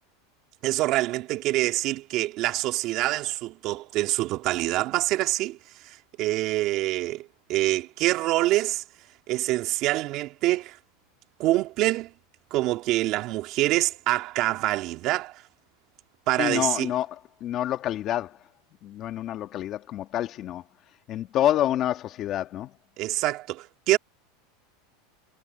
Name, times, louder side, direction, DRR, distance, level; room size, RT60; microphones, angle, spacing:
voice 1, 0.6-5.6 5.8-8.8 9.3-10.8 11.4-12.1 12.5-15.4 16.3-16.9 23.0-24.0, right 17 dB, 40° right, 2.6 m, -26 dB
voice 2, 16.4-17.2 17.4-18.4 18.8-20.6 21.1-22.7, left 12 dB, 35° left, 1.8 m, -27 dB
supercardioid pair, 160°, 0 cm